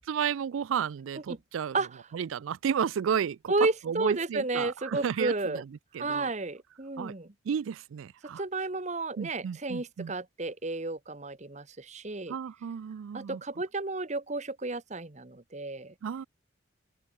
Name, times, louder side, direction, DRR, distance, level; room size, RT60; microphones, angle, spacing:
voice 1, 0.1-1.8 2.1-3.5 3.8-5.7 5.9-6.3 7.0-7.1 7.4-8.4 9.2-10.1 12.3-13.4 16.0-16.2, right 7 dB, 80° right, 0.4 m, -32 dB
voice 2, 3.5-5.6 6.0-7.3 8.4-12.4 13.1-15.9, right 3 dB, 35° right, 1.1 m, -32 dB
open air
head